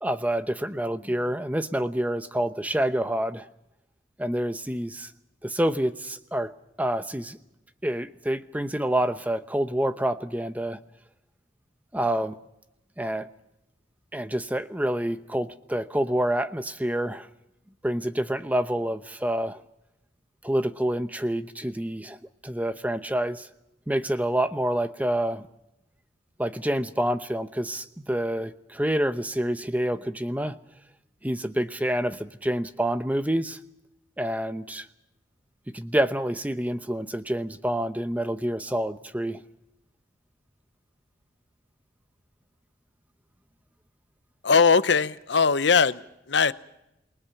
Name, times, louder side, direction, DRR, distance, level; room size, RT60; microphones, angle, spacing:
voice 1, 0.0-3.5 4.2-5.1 5.4-6.5 6.8-7.4 7.8-10.8 11.9-12.4 13.0-13.3 14.1-17.3 17.8-19.6 20.4-22.2 22.4-23.5 23.9-25.5 26.4-30.6 31.2-33.6 34.2-34.9 35.7-39.4, right 1 dB, 10° right, 0.8 m, -27 dB
voice 2, 44.4-46.0 46.3-46.5, left 5 dB, 70° left, 0.8 m, -20 dB
28.5 x 20.5 x 5.9 m
head